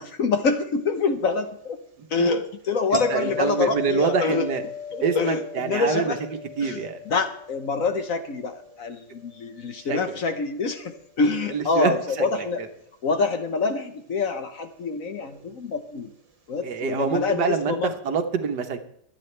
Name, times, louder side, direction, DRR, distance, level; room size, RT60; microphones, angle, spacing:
voice 1, 0.0-1.8 2.1-4.5 4.9-6.3 6.6-12.6 13.0-16.1 16.5-17.9, left 4 dB, 55° left, 8 dB, 1.3 m, -26 dB
sound 1, 2.9-9.9 15.2-15.4, left 5 dB, 25° right, 1.0 m, -37 dB
voice 2, 2.9-4.6 5.0-6.1 6.6-7.0 9.9-10.2 11.5-11.9 12.2-12.3 16.6-18.8, right 6 dB, 70° right, 7 dB, 1.7 m, -26 dB
23.0 x 9.0 x 3.3 m, 0.72 s
omnidirectional pair, 1.9 m